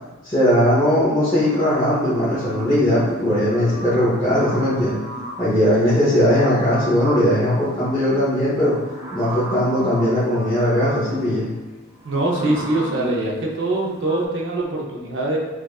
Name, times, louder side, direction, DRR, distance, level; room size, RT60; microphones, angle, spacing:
voice 1, 0.2-5.0 5.4-8.8 9.1-11.4, equal, 15° left, -10 dB, 0.8 m, -19 dB
sound 1, 1.3-2.8 3.2-5.6 6.1-14.3, equal, ahead, 1.2 m, -36 dB
voice 2, 12.0-15.4, right 2 dB, 65° right, -1 dB, 0.7 m, -23 dB
4.8 x 2.4 x 2.3 m, 1.1 s
head